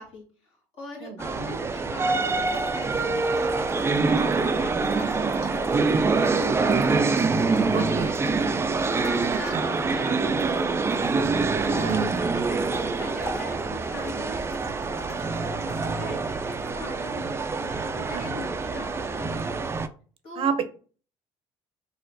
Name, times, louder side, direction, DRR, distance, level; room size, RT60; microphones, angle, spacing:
voice 1, 0.0-7.0 7.4-8.4 8.9-11.0 11.6-19.6 20.2-20.6, left 2 dB, 60° left, -3 dB, 1.5 m, -41 dB
sound 1, 1.2-19.9, right 4 dB, 20° right, 0.4 m, -25 dB
sound 2, 2.2-10.1 10.4-16.1 16.4-16.7, left 1 dB, 85° left, 1.4 m, -41 dB
voice 2, 7.7-8.1 9.5-9.6 11.7-12.3 18.1-18.5 20.4-20.6, right 6 dB, 55° right, 10 dB, 0.7 m, -29 dB
4.3 x 2.4 x 2.7 m, 0.39 s
supercardioid pair, 85°, 11 cm